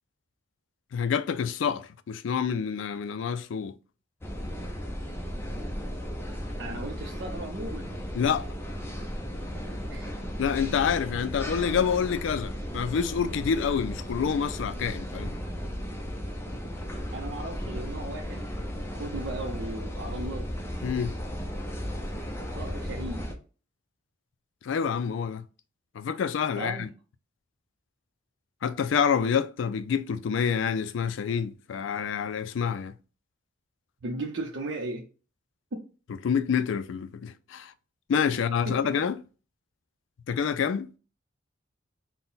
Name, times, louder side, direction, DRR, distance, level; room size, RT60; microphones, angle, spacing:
voice 1, 0.9-3.8 8.1-8.5 10.4-15.3 20.8-21.2 24.6-25.4 25.9-26.9 28.6-32.9 36.2-37.7 38.1-39.2 40.3-40.9, left 7 dB, 75° left, 0.3 m, -27 dB
sound 1, 4.2-23.3, equal, 10° left, 0.5 m, -35 dB
voice 2, 6.6-7.9 9.9-10.1 17.1-18.4 18.9-20.5 22.5-23.3 26.6-26.9 34.0-35.1 35.7-35.8 38.7-38.9, right 2 dB, 65° right, 0.5 m, -36 dB
3.9 x 2.1 x 3.9 m
head